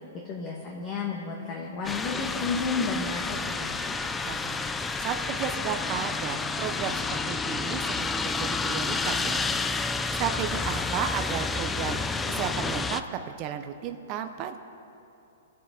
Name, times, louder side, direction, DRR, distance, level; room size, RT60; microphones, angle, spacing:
voice 1, 0.2-3.9, left 4 dB, 25° left, -1 dB, 1.3 m, -32 dB
sound 1, 1.8-13.0, left 4 dB, 10° left, 0.4 m, -30 dB
voice 2, 4.3-4.6 5.0-9.4 10.2-12.0 12.3-14.6, right 9 dB, 30° right, 6 dB, 0.6 m, -33 dB
22.5 x 8.6 x 5.1 m, 2.8 s
hypercardioid pair, 160°, 0 cm